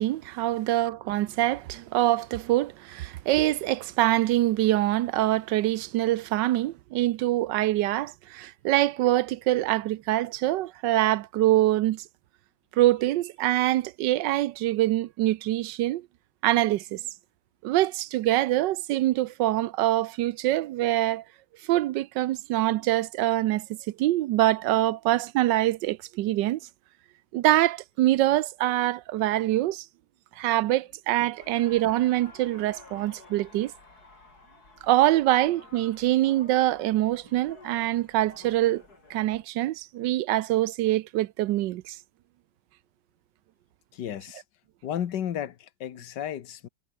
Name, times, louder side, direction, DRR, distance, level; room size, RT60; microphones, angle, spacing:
voice 1, 0.0-12.0 12.8-16.0 16.4-17.0 17.6-21.2 21.7-23.7 24.0-26.6 27.3-29.8 30.4-33.7 34.8-38.8 39.1-42.0, right 15 dB, 85° right, 1.3 m, -24 dB
sound 1, 31.4-39.4, left 3 dB, 60° left, 4.9 m, -52 dB
voice 2, 43.9-44.4 44.8-46.7, left 10 dB, 75° left, 1.8 m, -33 dB
omnidirectional pair, 1.9 m